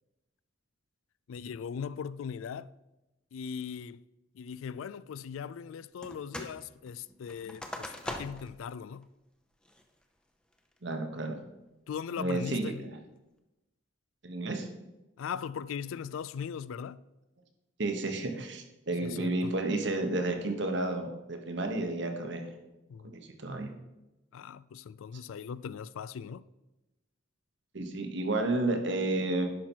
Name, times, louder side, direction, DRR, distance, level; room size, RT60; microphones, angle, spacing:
voice 1, 1.3-2.7 3.3-4.0 4.4-9.1 11.9-12.8 15.2-17.0 19.0-19.5 22.9-23.1 24.3-26.4, left 7 dB, 80° left, 0.3 m, -39 dB
sound 1, 6.0-6.6 6.9-8.6 9.0-9.1 9.6-10.0 10.5-10.9, left 1 dB, 5° left, 0.6 m, -41 dB
voice 2, 10.8-11.4 12.2-13.0 14.2-14.7 17.8-22.5 23.0-23.7 27.7-29.5, right 2 dB, 60° right, 1.2 m, -31 dB
10.5 x 5.7 x 4.5 m
head